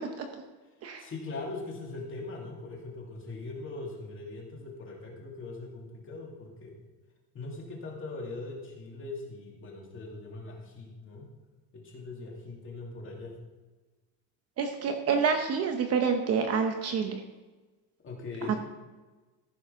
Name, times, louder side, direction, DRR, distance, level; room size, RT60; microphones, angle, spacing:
voice 1, 1.0-6.8 7.3-11.3 11.7-13.3 18.0-18.6, left 3 dB, 25° left, -1 dB, 2.5 m, -41 dB
voice 2, 14.6-17.2 18.4-18.5, right 6 dB, 35° right, 5 dB, 0.8 m, -28 dB
14.5 x 6.4 x 5.6 m, 1.2 s
cardioid pair, 170°, 44 cm